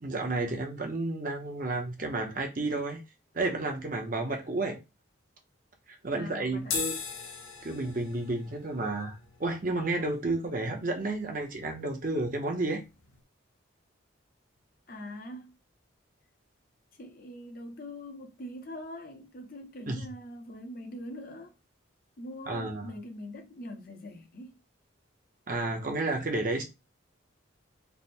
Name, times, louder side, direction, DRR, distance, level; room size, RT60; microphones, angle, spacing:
voice 1, 0.0-3.0 3.3-4.8 5.9-6.9 7.6-12.8 19.9-20.0 22.5-22.9 25.5-26.6, right 2 dB, 40° right, 0.7 m, -31 dB
voice 2, 6.1-6.8 14.9-15.6 16.9-21.6 22.2-24.6, left 1 dB, 45° left, 0.7 m, -43 dB
sound 1, 6.6-13.2, left 5 dB, 85° left, 0.7 m, -41 dB
3.4 x 2.1 x 4.2 m
head